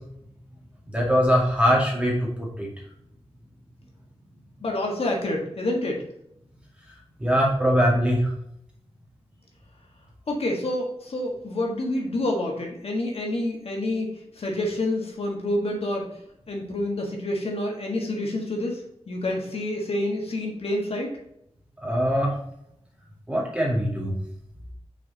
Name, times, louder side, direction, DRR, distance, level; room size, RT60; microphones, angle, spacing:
voice 1, 0.9-2.7 7.2-8.3 21.8-22.4 23.3-24.2, equal, 10° right, -3 dB, 2.2 m, -22 dB
voice 2, 4.6-6.0 10.3-16.1 16.5-18.8 19.1-21.1, left 1 dB, 65° left, 0 dB, 1.6 m, -28 dB
5.8 x 4.7 x 4.0 m, 0.75 s
wide cardioid pair, 100°, 11 cm